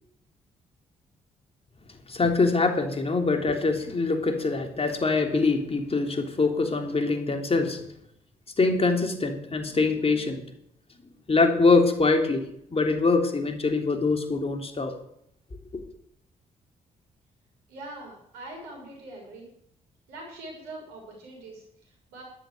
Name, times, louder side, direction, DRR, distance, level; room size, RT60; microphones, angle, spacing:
voice 1, 2.1-7.8 8.6-10.4 11.3-12.4 12.7-14.9 15.7-15.8, left 3 dB, 35° left, 4 dB, 3.4 m, -24 dB
voice 2, 17.7-19.5 20.1-22.2, right 2 dB, 80° right, 0 dB, 6.4 m, -43 dB
13.0 x 12.5 x 6.9 m, 0.72 s
hypercardioid pair, 45°, 16 cm